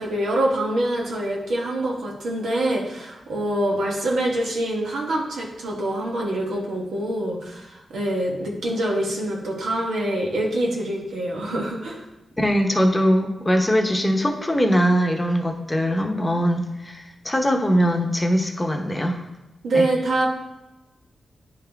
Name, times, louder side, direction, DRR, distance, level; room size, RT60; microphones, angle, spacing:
voice 1, 0.0-12.0 19.6-20.3, right 1 dB, 85° right, -2 dB, 1.3 m, -25 dB
voice 2, 12.4-19.2 19.7-19.9, equal, 15° left, 3 dB, 0.9 m, -21 dB
9.8 x 3.6 x 3.4 m, 0.98 s
cardioid pair, 70°, 0 cm